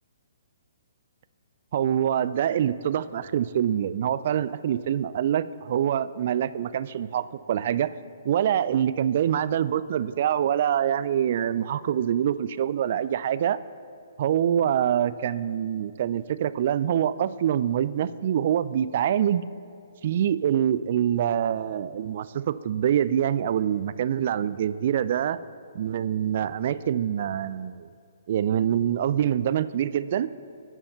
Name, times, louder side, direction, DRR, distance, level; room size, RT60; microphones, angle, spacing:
voice 1, 1.7-7.9 8.2-13.6 14.2-19.4 20.0-25.4 25.7-27.9 28.3-30.3, right 10 dB, 50° right, 16 dB, 0.3 m, -25 dB
10.5 x 5.5 x 5.5 m, 2.4 s
figure-of-eight pair, 130°, 0 cm